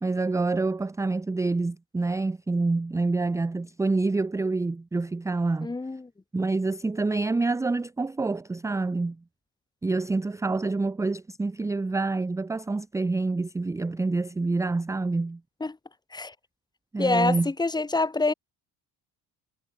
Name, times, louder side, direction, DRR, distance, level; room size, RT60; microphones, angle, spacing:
voice 1, 0.0-5.7 6.3-9.2 9.8-15.4 16.9-17.5, right 3 dB, 10° right, 0.5 m, -27 dB
voice 2, 5.6-6.1 15.6-15.8 16.1-16.3 17.0-18.3, left 3 dB, 10° left, 0.9 m, -26 dB
cardioid pair, 145°, 38 cm